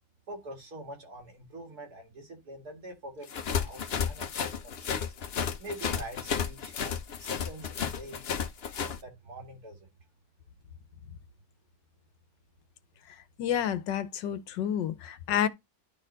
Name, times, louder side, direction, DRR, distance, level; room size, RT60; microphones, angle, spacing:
voice 1, 0.3-5.1 5.6-6.9 7.2-8.2 8.8-9.9, right 1 dB, 55° right, 2.6 m, -44 dB
sound 1, 3.3-9.0, left 7 dB, 50° left, 0.8 m, -32 dB
voice 2, 13.4-15.5, left 9 dB, 80° left, 1.4 m, -29 dB
11.5 x 4.3 x 3.9 m
omnidirectional pair, 2.0 m